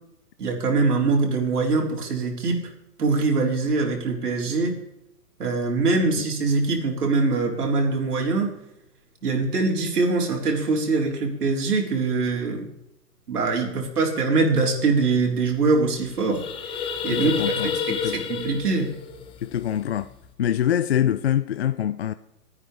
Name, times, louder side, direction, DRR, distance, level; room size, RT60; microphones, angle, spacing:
voice 1, 0.4-2.7 3.0-4.8 5.4-8.5 9.2-12.7 13.3-16.4 17.0-18.9, right 3 dB, 70° right, 4.4 m, -23 dB
sound 1, 15.0-15.1 15.3-15.6 15.9-20.3, left 7 dB, 10° left, 0.8 m, -30 dB
voice 2, 17.1-18.2 19.4-20.1 20.4-22.1, left 10 dB, 45° left, 0.5 m, -25 dB
27.0 x 9.6 x 3.4 m
hypercardioid pair, 140°, 47 cm